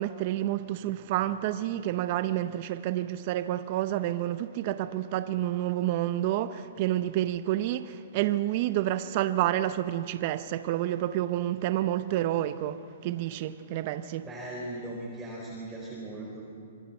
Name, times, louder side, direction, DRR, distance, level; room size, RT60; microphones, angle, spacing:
voice 1, 0.0-14.3, right 13 dB, 45° right, 0.7 m, -29 dB
voice 2, 14.2-16.4, right 1 dB, 10° right, 4.6 m, -38 dB
26.5 x 22.5 x 4.4 m
hypercardioid pair, 140°, 0 cm